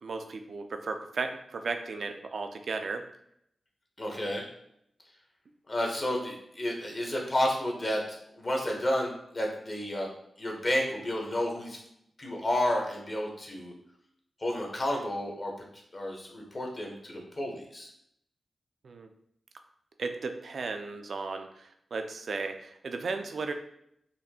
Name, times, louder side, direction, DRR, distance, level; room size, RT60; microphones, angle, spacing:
voice 1, 0.0-3.0 18.8-19.1 20.0-23.5, right 4 dB, 70° right, 6 dB, 0.4 m, -35 dB
voice 2, 4.0-4.4 5.7-10.1 10.4-11.8 12.2-13.7 14.4-15.5 15.9-17.9, left 1 dB, 40° left, 0 dB, 0.9 m, -31 dB
4.1 x 2.7 x 2.8 m, 0.73 s
wide cardioid pair, 85°, 0 cm